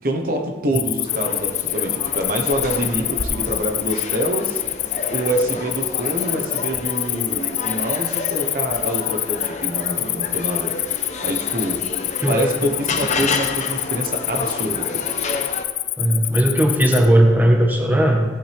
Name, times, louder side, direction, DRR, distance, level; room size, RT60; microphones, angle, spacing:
voice 1, 0.0-4.6 5.1-10.7 11.2-11.8 12.3-15.1, right 1 dB, 55° right, 3 dB, 1.1 m, -25 dB
Cricket, 0.7-17.1, left 16 dB, 60° left, 0.5 m, -26 dB
sound 1, 1.1-15.6, left 3 dB, 40° left, 0.9 m, -30 dB
voice 2, 16.0-18.2, right 1 dB, 10° right, 1 dB, 1.2 m, -17 dB
16.5 x 8.7 x 3.5 m, 1.4 s
head